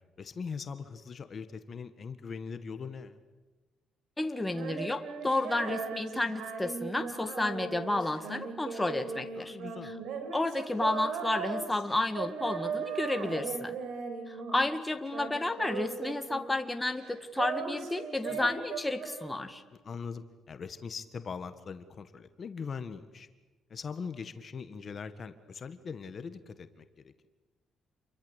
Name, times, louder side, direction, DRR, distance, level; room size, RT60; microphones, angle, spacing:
voice 1, 0.2-3.2 9.3-9.9 18.3-18.4 19.7-23.3 23.7-27.1, left 5 dB, 40° left, 10 dB, 1.6 m, -41 dB
voice 2, 4.2-9.6 9.8-9.9 10.3-13.8 14.3-19.6, left 2 dB, 10° left, 7 dB, 1.9 m, -31 dB
Female singing, 4.5-14.8 15.1-16.7 17.0-19.7, right 6 dB, 80° right, 4.6 m, -38 dB
28.5 x 23.0 x 8.3 m, 1.2 s
cardioid pair, 110°, 0 cm